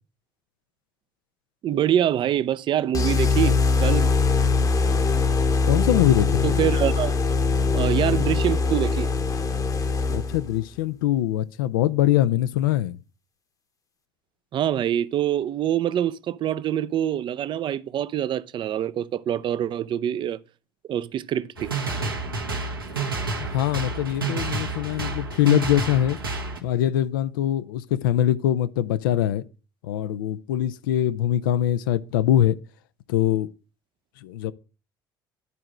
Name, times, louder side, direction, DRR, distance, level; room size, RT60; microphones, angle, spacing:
voice 1, 1.6-4.2 6.4-7.1 7.7-9.1 14.5-20.4 20.9-21.7, right 10 dB, 45° right, 0.5 m, -25 dB
sound 1, 2.9-10.6, left 4 dB, 30° left, 1.0 m, -22 dB
voice 2, 5.6-6.5 10.1-13.0 23.4-26.2 26.6-29.4 29.8-32.5 33.1-33.5 34.2-34.5, left 12 dB, 70° left, 0.5 m, -23 dB
sound 2, 21.6-26.6, right 3 dB, 85° right, 1.3 m, -29 dB
11.0 x 4.8 x 6.2 m
figure-of-eight pair, 55°, 12 cm